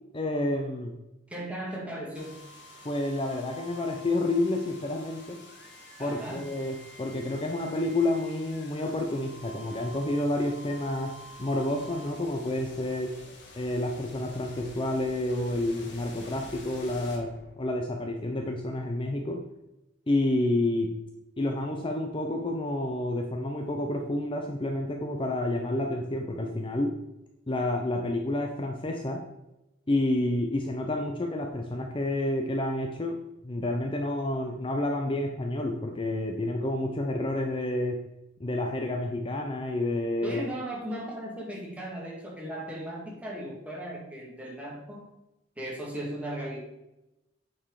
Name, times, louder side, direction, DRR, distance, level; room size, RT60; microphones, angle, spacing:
voice 1, 0.1-0.9 2.8-5.4 6.0-13.1 13.6-19.5 20.1-20.9 21.4-27.0 27.5-29.2 29.9-33.2 33.4-38.0 38.4-40.4, left 1 dB, 25° left, 2 dB, 0.7 m, -29 dB
voice 2, 1.3-2.4 6.0-6.5 40.2-45.1 45.6-46.6, right 1 dB, 5° right, -3 dB, 2.1 m, -37 dB
sound 1, 2.1-18.0, left 1 dB, 65° left, 1.7 m, -48 dB
9.0 x 4.6 x 4.8 m, 0.93 s
head